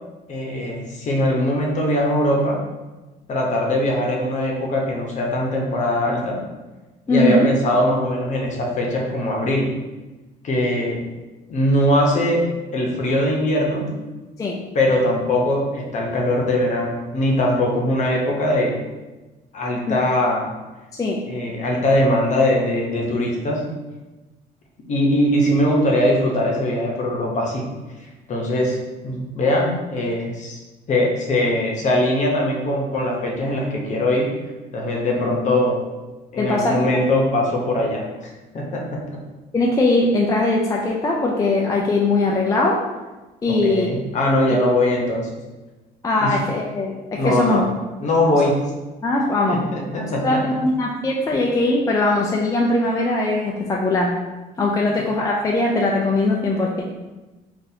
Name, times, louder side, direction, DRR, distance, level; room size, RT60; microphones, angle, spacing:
voice 1, 0.3-2.6 3.3-6.4 7.1-9.7 10.4-11.0 11.5-12.5 12.7-13.9 14.7-18.8 19.5-20.5 21.3-23.6 24.9-27.7 28.3-28.8 29.0-30.6 30.9-34.3 34.7-35.8 36.3-38.0 38.5-39.2 43.5-45.3 46.2-46.4 47.2-47.7 48.0-48.6 49.5-50.6 54.9-55.0, left 1 dB, 45° left, -1 dB, 0.8 m, -21 dB
voice 2, 7.1-7.5 14.4-14.6 19.9-20.0 20.9-21.2 36.4-36.8 39.5-42.8 43.4-43.9 46.0-47.6 49.0-49.6 50.2-54.1 54.6-56.8, left 2 dB, 20° left, -2 dB, 0.4 m, -20 dB
3.9 x 2.5 x 2.7 m, 1.1 s
cardioid pair, 110°, 17 cm